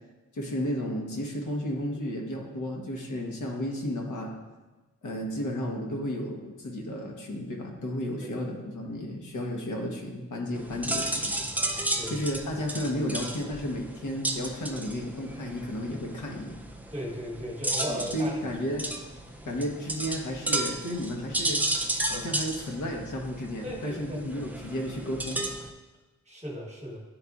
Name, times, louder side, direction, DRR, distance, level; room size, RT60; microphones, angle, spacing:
voice 1, 0.3-4.3 5.0-11.3 12.1-16.6 17.9-18.9 19.4-21.6 22.0-25.5, equal, 80° left, 1 dB, 1.0 m, -33 dB
sound 1, 10.5-25.7, right 1 dB, 5° right, 0.3 m, -33 dB
voice 2, 16.9-18.3 23.6-24.2 26.3-27.0, equal, 20° right, -2 dB, 1.1 m, -36 dB
10.0 x 4.0 x 2.3 m, 1.2 s
wide cardioid pair, 170°, 30 cm